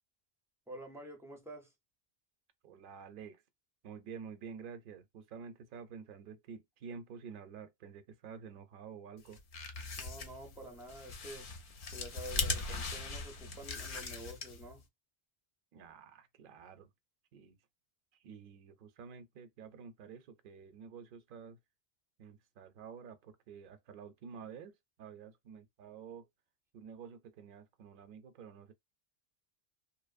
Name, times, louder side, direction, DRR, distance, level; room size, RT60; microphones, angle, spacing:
voice 1, 0.7-1.7 10.0-11.5 11.9-14.8, right 1 dB, 5° right, 0.4 m, -49 dB
voice 2, 2.6-3.4 3.8-9.4 15.7-16.9 17.3-17.6 18.2-21.6 22.2-26.3 26.7-28.7, right 6 dB, 60° right, 0.7 m, -50 dB
sound 1, 9.3-14.8, left 4 dB, 65° left, 0.7 m, -40 dB
2.8 x 2.0 x 2.3 m
omnidirectional pair, 1.0 m